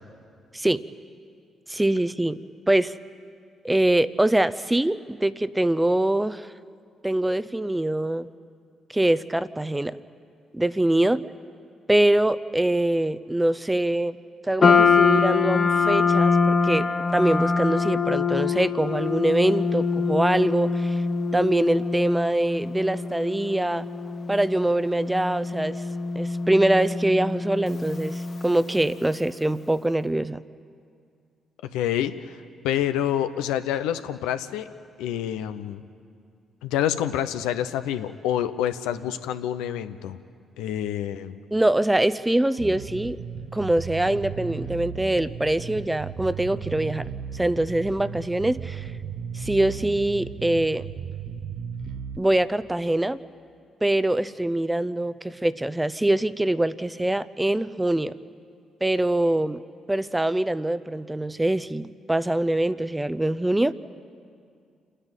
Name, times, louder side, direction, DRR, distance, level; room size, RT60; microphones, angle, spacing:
voice 1, 0.5-0.8 1.7-2.4 2.7-2.9 3.6-6.5 7.0-8.3 8.9-10.0 10.5-11.2 11.9-14.2 14.4-21.0 21.3-23.8 24.3-25.8 26.1-30.4 41.5-43.2 43.5-47.1 47.3-48.9 49.3-50.8 52.2-53.2 53.8-58.2 58.8-59.6 59.9-63.7, right 1 dB, 15° right, 15 dB, 0.7 m, -23 dB
sound 1, 14.6-29.0, left 5 dB, 45° left, 1.1 m, -24 dB
voice 2, 31.7-32.4 32.6-34.7 35.0-35.8 36.6-40.2 40.6-41.3, left 10 dB, 85° left, 10 dB, 0.7 m, -27 dB
Bass guitar, 42.6-52.2, right 7 dB, 70° right, 0.8 m, -35 dB
28.5 x 10.0 x 9.0 m, 2.3 s
hypercardioid pair, 50°, 0 cm